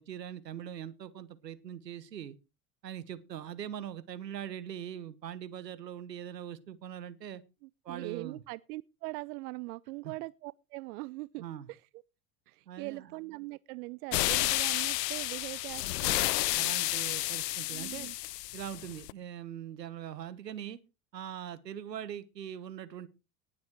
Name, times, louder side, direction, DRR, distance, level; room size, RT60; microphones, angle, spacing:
voice 1, 0.0-2.4 2.8-7.4 7.8-8.4 10.0-10.1 11.4-11.7 12.7-13.1 16.5-18.1 18.5-20.8 21.1-23.1, right 10 dB, 90° right, 1.4 m, -42 dB
voice 2, 7.6-11.9 12.5-16.3 17.7-18.2, right 22 dB, 65° right, 0.6 m, -42 dB
sound 1, 14.1-19.1, left 17 dB, 80° left, 0.6 m, -31 dB
19.0 x 7.7 x 4.6 m
hypercardioid pair, 80°, 48 cm